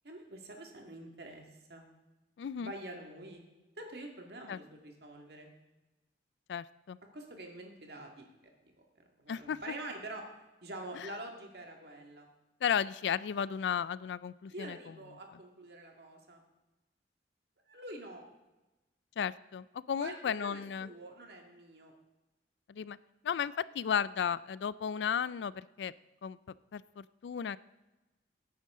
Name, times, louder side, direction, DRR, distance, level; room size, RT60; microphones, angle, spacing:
voice 1, 0.0-1.4 1.7-1.8 2.6-3.4 3.8-5.5 7.1-8.3 9.2-10.3 10.6-12.3 14.5-16.4 17.7-18.2 20.0-21.9, right 1 dB, 60° right, 2 dB, 2.0 m, -46 dB
voice 2, 2.4-2.7 4.5-4.6 6.5-7.0 9.3-9.6 11.0-11.1 12.6-14.8 19.2-20.9 22.7-23.0 23.2-25.9 26.2-26.4 26.7-27.6, left 7 dB, 80° left, 19 dB, 0.3 m, -34 dB
17.0 x 9.4 x 3.7 m, 1.1 s
head